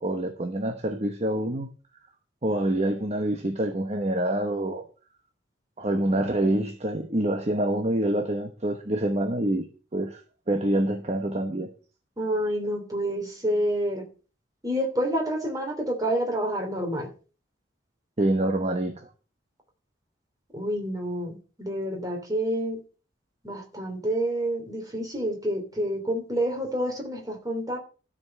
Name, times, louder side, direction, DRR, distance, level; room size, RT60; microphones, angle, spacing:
voice 1, 0.0-1.7 2.4-4.8 5.8-9.6 9.9-10.2 10.5-11.7 18.2-19.1, right 1 dB, 35° right, 5 dB, 1.0 m, -26 dB
voice 2, 12.2-14.1 14.6-17.1 20.5-22.8 23.4-27.8, right 1 dB, 20° right, 2 dB, 3.2 m, -28 dB
13.0 x 5.3 x 6.5 m, 0.36 s
head